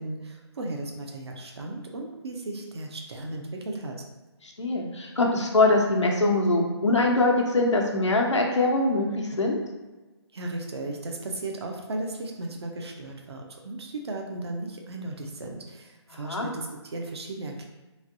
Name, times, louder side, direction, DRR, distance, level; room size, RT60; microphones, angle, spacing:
voice 1, 0.0-4.0 10.3-17.7, right 2 dB, 65° right, 1 dB, 0.6 m, -35 dB
voice 2, 4.4-9.6 16.2-16.5, left 2 dB, 90° left, 0 dB, 0.8 m, -23 dB
3.2 x 2.8 x 2.6 m, 1.2 s
figure-of-eight pair, 155°, 15 cm